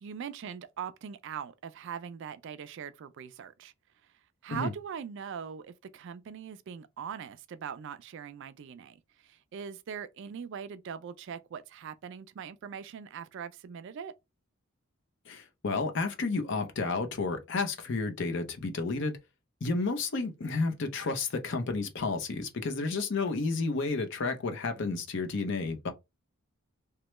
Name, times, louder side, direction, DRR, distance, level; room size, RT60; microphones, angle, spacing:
voice 1, 0.0-3.7 4.4-14.1, right 7 dB, 55° right, 0.3 m, -41 dB
voice 2, 15.3-19.2 19.6-25.9, left 3 dB, 55° left, 0.6 m, -31 dB
3.1 x 2.2 x 3.0 m
head